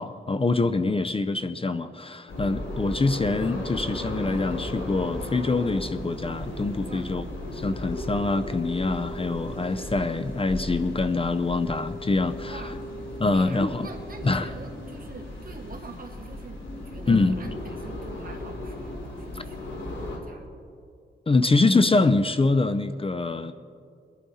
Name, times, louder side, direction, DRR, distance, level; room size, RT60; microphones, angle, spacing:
voice 1, 0.0-7.2 7.5-12.6 13.2-13.9 14.2-14.5 17.1-17.3 19.3-19.4 21.3-23.5, left 3 dB, 30° left, 11 dB, 0.5 m, -24 dB
sound 1, 2.3-20.2, left 1 dB, 85° left, 3.0 m, -36 dB
sound 2, 7.8-15.1, right 1 dB, 45° left, 2.2 m, -42 dB
voice 2, 12.4-12.9 13.2-20.5 21.3-21.5, right 3 dB, 50° right, 2 dB, 2.0 m, -45 dB
22.5 x 11.5 x 4.2 m, 2.3 s
wide cardioid pair, 90°, 19 cm